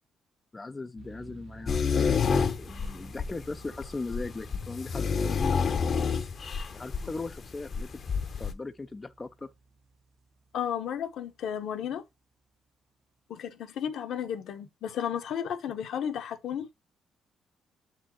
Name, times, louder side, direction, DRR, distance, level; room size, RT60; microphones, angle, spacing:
voice 1, 0.5-1.8 2.6-5.6 6.7-7.9 8.4-9.5, left 3 dB, 25° left, 0.5 m, -39 dB
sound 1, 1.0-11.8, right 3 dB, 65° right, 1.0 m, -52 dB
sound 2, 1.7-8.5, left 5 dB, 50° left, 0.9 m, -29 dB
voice 2, 10.5-12.0 13.3-16.7, left 9 dB, 75° left, 1.1 m, -33 dB
7.3 x 4.3 x 3.0 m
cardioid pair, 90°, 0 cm